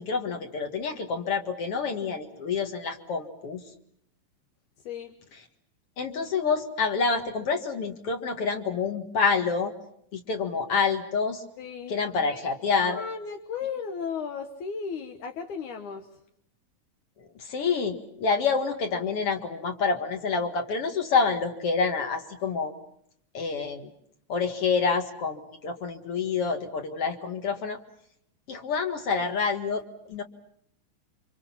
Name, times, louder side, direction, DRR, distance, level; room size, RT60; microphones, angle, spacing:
voice 1, 0.0-3.6 6.0-9.7 10.1-11.4 11.9-13.0 17.4-22.7 23.3-23.9 24.3-27.8 28.5-29.8 30.1-30.2, left 5 dB, 50° left, 5 dB, 2.5 m, -27 dB
voice 2, 4.9-5.2 11.6-12.0 12.8-16.1, left 6 dB, 75° left, 5 dB, 2.6 m, -35 dB
29.0 x 26.0 x 5.9 m, 0.70 s
omnidirectional pair, 3.6 m